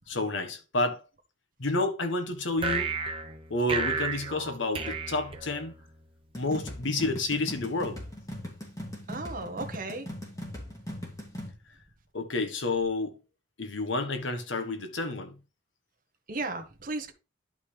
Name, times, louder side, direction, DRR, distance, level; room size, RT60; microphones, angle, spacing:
voice 1, 0.1-1.0 1.6-2.9 3.5-5.8 6.3-8.0 12.1-13.2 13.6-15.4, left 2 dB, 80° left, 1.4 m, -30 dB
sound 1, 2.6-6.0, right 4 dB, 30° right, 1.0 m, -33 dB
sound 2, 6.3-11.5, left 1 dB, 20° left, 2.5 m, -40 dB
voice 2, 9.1-10.1 16.3-17.1, right 3 dB, 45° right, 1.4 m, -35 dB
11.0 x 5.4 x 3.3 m
head